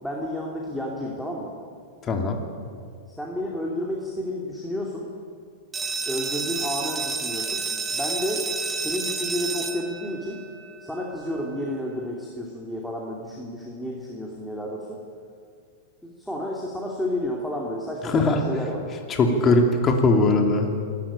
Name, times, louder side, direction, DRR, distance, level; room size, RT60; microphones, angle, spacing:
voice 1, 0.0-1.5 3.1-5.1 6.1-7.6 7.9-8.4 8.8-10.4 10.8-15.0 16.0-18.8 19.2-19.7, left 1 dB, ahead, -3 dB, 2.7 m, -31 dB
voice 2, 2.0-2.4 18.0-18.4 19.1-20.7, left 2 dB, 25° left, 3 dB, 2.6 m, -20 dB
sound 1, 5.7-11.2, right 4 dB, 15° right, 1.6 m, -30 dB
26.5 x 12.5 x 8.8 m, 2.2 s
supercardioid pair, 140°, 0 cm